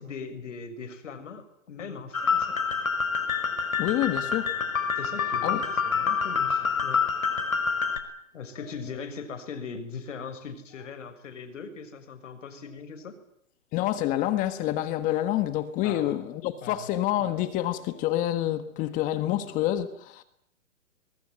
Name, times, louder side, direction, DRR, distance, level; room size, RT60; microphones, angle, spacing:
voice 1, 0.0-2.6 5.0-7.1 8.3-13.1 15.8-16.2 16.6-16.9, left 5 dB, 65° left, 6.8 m, -40 dB
sound 1, 2.1-8.0, left 5 dB, 85° left, 6.0 m, -27 dB
voice 2, 3.8-4.5 5.4-5.6 13.7-20.2, left 13 dB, 20° left, 1.5 m, -27 dB
23.0 x 23.0 x 9.4 m
hypercardioid pair, 155°, 40 cm